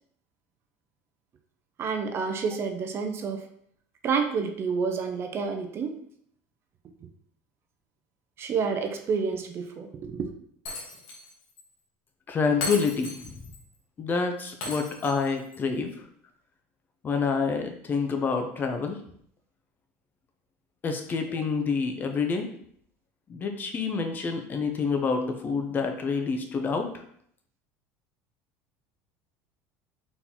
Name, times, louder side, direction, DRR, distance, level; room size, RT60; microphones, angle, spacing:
voice 1, 1.8-3.5 4.0-6.0 8.4-10.3, right 5 dB, 35° right, 5 dB, 0.5 m, -29 dB
Shatter, 10.7-11.3 11.6-11.7 12.6-13.6 14.6-15.6, left 2 dB, 80° left, 1.4 m, -36 dB
voice 2, 12.3-13.4 14.0-16.1 17.0-19.0 20.8-22.5 23.3-27.0, left 5 dB, 30° left, 5 dB, 0.6 m, -28 dB
4.1 x 3.8 x 2.9 m, 0.64 s
supercardioid pair, 125°, 7 cm